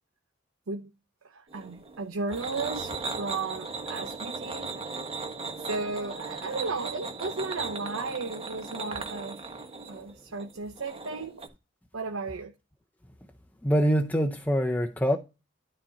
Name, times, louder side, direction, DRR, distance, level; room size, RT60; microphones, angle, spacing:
voice 1, 1.2-4.7 5.6-9.4 9.9-11.4 11.9-12.5, right 3 dB, 85° right, 0.8 m, -35 dB
sound 1, 1.5-11.5, right 4 dB, 30° right, 1.3 m, -37 dB
voice 2, 13.6-15.2, equal, 10° left, 0.7 m, -24 dB
12.5 x 4.3 x 3.9 m
head